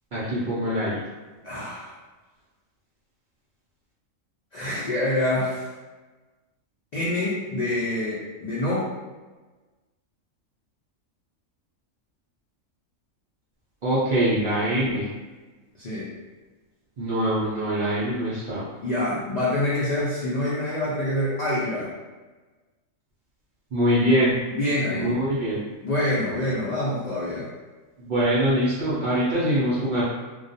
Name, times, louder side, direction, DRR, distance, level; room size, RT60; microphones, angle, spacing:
voice 1, 0.1-1.0 13.8-15.1 17.0-18.6 23.7-24.4 24.9-25.6 28.0-30.0, equal, 60° right, -9 dB, 0.5 m, -23 dB
voice 2, 1.4-1.9 4.5-5.7 6.9-8.9 15.8-16.1 18.8-21.9 24.5-25.2 25.8-27.5, left 1 dB, 80° left, -8 dB, 0.3 m, -26 dB
2.3 x 2.2 x 2.6 m, 1.3 s
omnidirectional pair, 1.4 m